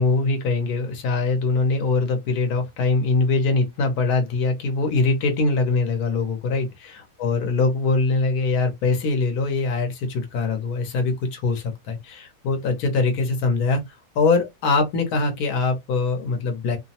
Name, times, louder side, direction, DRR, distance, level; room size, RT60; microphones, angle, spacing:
voice 1, 0.0-13.8 14.1-16.8, left 3 dB, 85° left, 1.3 m, -22 dB
2.9 x 2.0 x 2.7 m
omnidirectional pair, 1.6 m